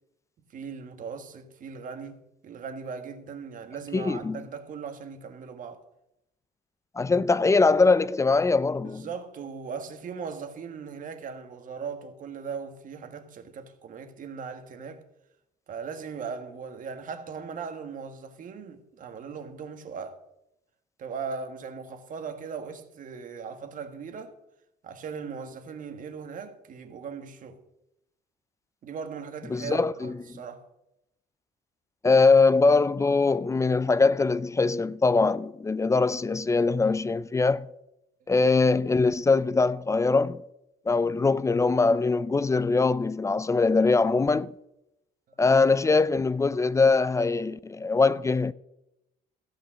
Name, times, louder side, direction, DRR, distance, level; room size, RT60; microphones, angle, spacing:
voice 1, 0.4-5.8 8.8-15.0 15.7-20.2 21.0-24.3 24.8-27.6 28.8-30.7 45.3-45.4, right 6 dB, 50° right, 1.6 m, -39 dB
voice 2, 3.9-4.4 7.0-9.1 29.5-30.2 32.0-37.7 38.3-40.4 40.9-44.5 45.4-48.5, left 3 dB, 20° left, 0.4 m, -22 dB
15.0 x 6.4 x 7.4 m
cardioid pair, 110°, 17 cm